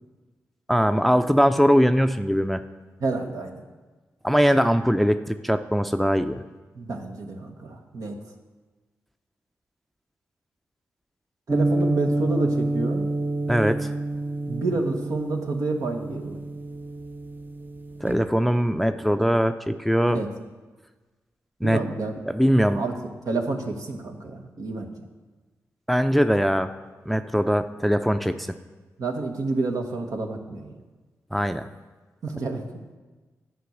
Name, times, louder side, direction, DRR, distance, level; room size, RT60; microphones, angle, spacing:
voice 1, 0.7-2.6 4.2-6.4 13.5-13.9 18.0-20.2 21.6-21.8 22.3-22.8 25.9-26.7 27.1-28.5 31.3-31.7, equal, ahead, 9 dB, 0.5 m, -21 dB
voice 2, 3.0-3.6 6.7-8.2 11.5-13.1 14.5-16.4 20.1-20.3 21.6-22.1 22.7-23.0 23.2-24.9 29.0-30.7 32.2-32.6, right 3 dB, 75° right, 2 dB, 1.3 m, -29 dB
sound 1, 11.5-18.3, right 2 dB, 30° right, 0.8 m, -28 dB
10.0 x 5.3 x 7.8 m, 1.3 s
supercardioid pair, 45°, 6 cm